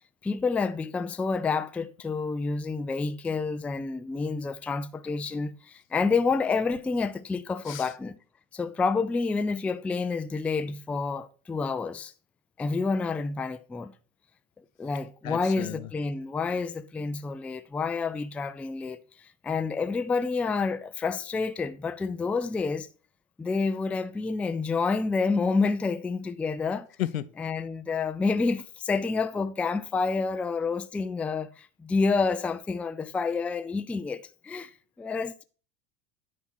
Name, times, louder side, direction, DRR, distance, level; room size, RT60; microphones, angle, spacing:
voice 1, 0.2-8.2 8.5-12.1 12.6-13.9 14.8-19.0 19.4-22.9 23.4-26.9 27.4-34.7 35.0-35.4, left 4 dB, 5° left, 0.3 m, -29 dB
voice 2, 15.2-15.9 27.0-27.3, left 13 dB, 85° left, 0.8 m, -33 dB
10.0 x 4.2 x 6.1 m
hypercardioid pair, 90°, 40 cm